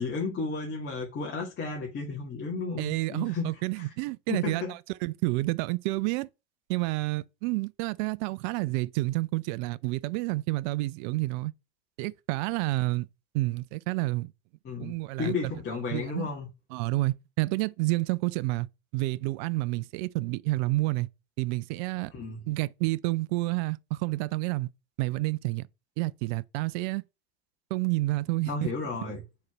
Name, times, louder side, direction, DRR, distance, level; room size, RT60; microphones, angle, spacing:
voice 1, 0.0-3.5 4.3-4.7 14.6-16.5 22.1-22.4 28.5-29.2, left 4 dB, 30° left, 2.0 m, -33 dB
voice 2, 2.8-6.3 6.7-11.5 12.0-13.1 13.3-14.3 14.8-15.3 15.9-16.3 16.7-18.7 18.9-21.1 21.4-22.1 22.5-24.7 25.0-25.7 26.0-27.0 27.7-28.5, right 21 dB, 45° right, 0.4 m, -29 dB
4.7 x 4.1 x 5.7 m
figure-of-eight pair, 85°, 35 cm